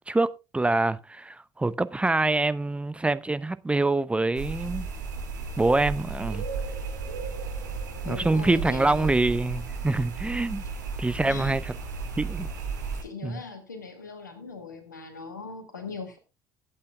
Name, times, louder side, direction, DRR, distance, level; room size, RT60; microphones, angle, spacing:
voice 1, 0.0-4.9 5.6-6.4 8.1-10.6 11.0-11.7 12.2-12.5 13.2-13.4, right 2 dB, 10° right, 0.6 m, -25 dB
sound 1, 4.3-13.0, right 4 dB, 75° right, 2.3 m, -34 dB
voice 2, 8.0-9.1 11.3-11.6 13.0-16.2, left 4 dB, 80° left, 1.9 m, -40 dB
20.0 x 8.6 x 2.2 m
figure-of-eight pair, 55°, 10 cm